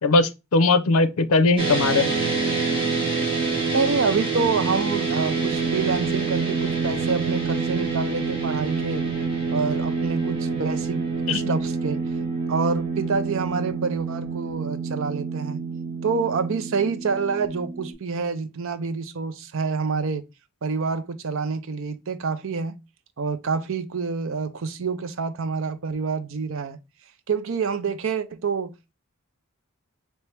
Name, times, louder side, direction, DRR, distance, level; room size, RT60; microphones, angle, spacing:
voice 1, 0.0-2.1 11.3-11.5, left 3 dB, 80° left, 0.6 m, -20 dB
sound 1, 1.6-17.9, right 4 dB, 25° right, 1.6 m, -27 dB
voice 2, 3.7-9.1 9.5-11.0 11.3-12.0 12.5-15.6 16.0-20.2 20.6-22.8 23.2-26.8 27.3-28.9, right 5 dB, 60° right, 0.5 m, -27 dB
4.4 x 3.0 x 3.3 m
head